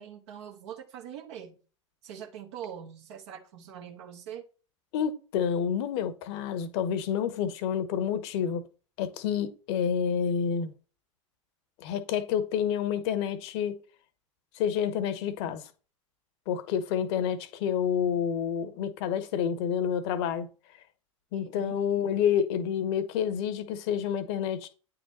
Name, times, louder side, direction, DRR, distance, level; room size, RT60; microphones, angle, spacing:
voice 1, 0.0-1.6 2.0-4.5 21.3-21.8, right 9 dB, 60° right, 1.1 m, -43 dB
voice 2, 4.9-8.6 9.0-10.7 11.8-13.7 14.5-15.6 16.5-20.5 21.3-24.7, left 8 dB, 55° left, 1.0 m, -29 dB
9.1 x 3.9 x 4.1 m
figure-of-eight pair, 85°, 17 cm